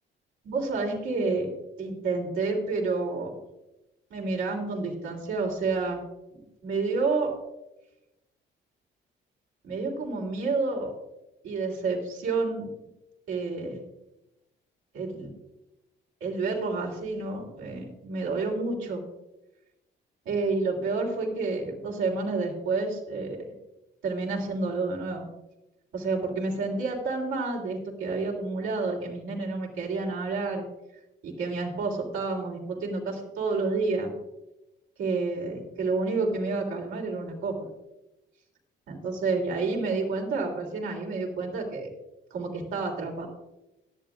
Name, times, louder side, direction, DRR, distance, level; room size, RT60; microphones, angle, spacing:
voice 1, 0.4-1.5 1.8-3.3 4.1-6.0 6.6-7.3 9.6-10.9 11.4-12.7 13.3-13.8 14.9-15.3 16.2-19.0 20.3-23.4 24.0-25.2 25.9-30.6 31.2-34.1 35.0-37.6 38.9-41.9 42.3-43.3, right 3 dB, 85° right, -1 dB, 3.3 m, -29 dB
17.5 x 11.0 x 2.5 m, 0.96 s
cardioid pair, 90°, 20 cm